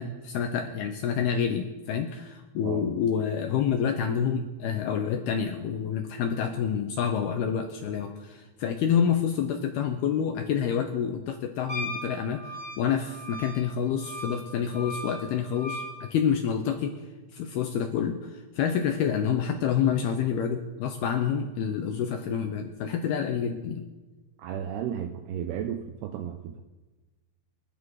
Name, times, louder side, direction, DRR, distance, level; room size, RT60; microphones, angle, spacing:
voice 1, 0.0-23.9, left 7 dB, 75° left, 5 dB, 2.3 m, -28 dB
Wind instrument woodwind instrument, 11.7-16.0, equal, 25° left, 2.5 m, -38 dB
voice 2, 24.4-26.6, right 9 dB, 80° right, 7 dB, 2.4 m, -34 dB
27.5 x 11.0 x 4.8 m, 1.2 s
omnidirectional pair, 5.5 m